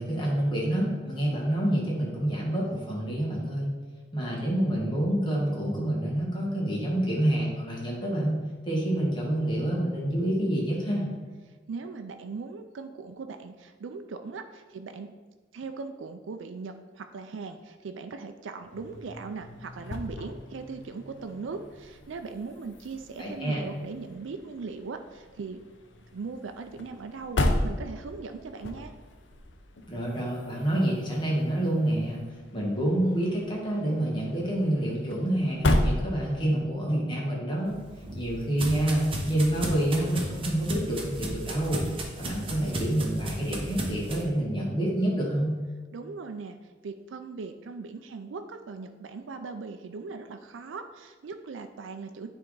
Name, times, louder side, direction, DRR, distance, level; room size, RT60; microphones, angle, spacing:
voice 1, 0.0-3.7 4.1-11.1 23.2-23.6 29.9-32.2 32.5-37.7 38.1-41.9 42.2-45.5, right 1 dB, 25° left, -4 dB, 1.7 m, -27 dB
voice 2, 11.7-15.2 15.5-25.6 26.1-28.9 45.9-52.3, right 4 dB, 90° right, 7 dB, 0.4 m, -39 dB
sound 1, 18.6-36.7, left 1 dB, 70° left, 0.7 m, -35 dB
sound 2, 37.7-44.2, right 1 dB, 30° right, 0.9 m, -35 dB
9.4 x 3.5 x 3.9 m, 1.4 s
head